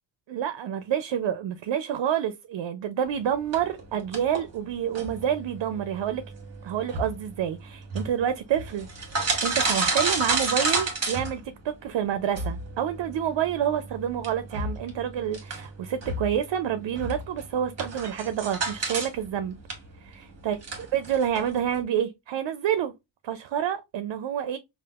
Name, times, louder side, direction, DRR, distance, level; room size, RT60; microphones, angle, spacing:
voice 1, 0.3-6.2 6.6-8.9 9.4-19.6 20.0-20.6 20.9-22.9 23.2-24.6, right 9 dB, 80° right, 0.5 m, -28 dB
sound 1, 3.5-11.9 12.3-19.1 19.4-21.8, right 3 dB, 35° right, 1.3 m, -31 dB
5.1 x 2.4 x 2.3 m
wide cardioid pair, 165°, 43 cm